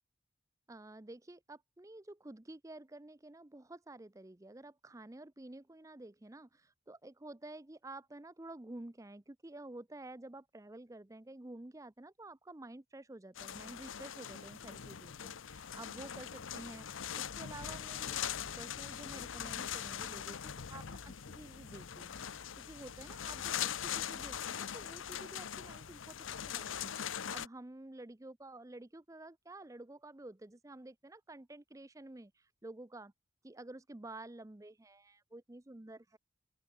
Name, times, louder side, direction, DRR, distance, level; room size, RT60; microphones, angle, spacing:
voice 1, 0.7-18.2 18.6-26.2 26.4-33.1 33.4-36.2, right 2 dB, 15° right, 0.5 m, -51 dB
sound 1, 13.3-27.5, left 9 dB, 85° left, 0.8 m, -41 dB
open air
head